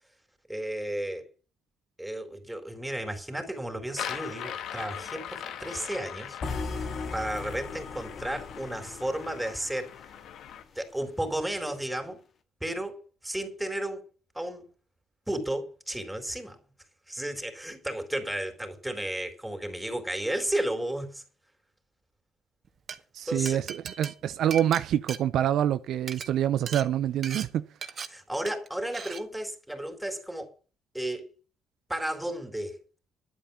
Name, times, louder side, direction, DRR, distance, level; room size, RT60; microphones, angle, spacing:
voice 1, 0.5-1.3 2.0-6.4 7.1-10.0 10.8-12.2 12.6-14.0 14.3-14.7 15.3-16.6 17.1-21.2 23.3-23.6 28.1-30.5 30.9-31.3 31.9-32.8, right 1 dB, 5° right, 4.1 m, -33 dB
sound 1, 3.9-10.6, left 9 dB, 70° left, 1.7 m, -40 dB
sound 2, 6.4-10.5, left 4 dB, 45° left, 2.5 m, -38 dB
Glass, 22.7-23.0 23.5-25.7 26.0-26.3 26.7-26.9 27.2-27.5 27.8-28.1 28.5-28.7 28.9-29.2, right 6 dB, 45° right, 1.8 m, -38 dB
voice 2, 23.1-27.6, right 11 dB, 70° right, 0.7 m, -26 dB
11.0 x 9.0 x 7.1 m
cardioid pair, 95°, 0 cm